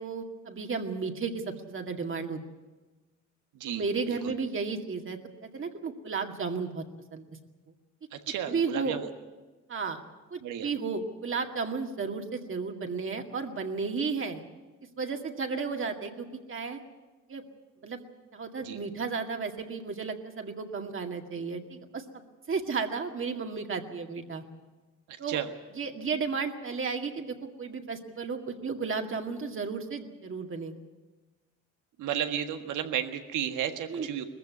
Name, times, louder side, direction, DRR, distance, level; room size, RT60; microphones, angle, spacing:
voice 1, 0.0-2.4 3.7-6.8 7.1-7.2 8.5-9.0 9.7-10.0 10.3-14.4 15.0-16.8 17.3-17.4 17.8-18.0 18.3-22.2 22.5-24.4 25.2-25.4 25.8-30.8 33.9-34.1, right 5 dB, 45° right, 4 dB, 2.1 m, -33 dB
voice 2, 3.5-4.3 8.1-9.1 10.4-10.7 18.6-18.8 25.1-25.5 32.0-34.2, right 10 dB, 85° right, 7 dB, 1.6 m, -33 dB
20.5 x 15.0 x 9.6 m, 1.2 s
cardioid pair, 90°, 30 cm